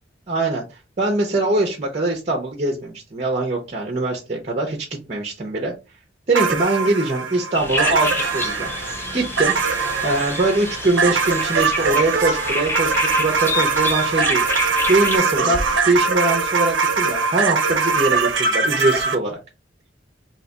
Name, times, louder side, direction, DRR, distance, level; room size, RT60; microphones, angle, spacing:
voice 1, 0.3-0.6 1.0-4.8 5.1-5.7 6.3-8.7 9.1-9.5 10.0-14.4 14.9-19.4, right 2 dB, 35° right, 1 dB, 0.7 m, -22 dB
sound 1, 6.3-19.2, right 4 dB, 85° right, 0.7 m, -22 dB
sound 2, 7.5-15.2, left 2 dB, 15° left, 0.5 m, -28 dB
2.9 x 2.4 x 4.0 m, 0.28 s
head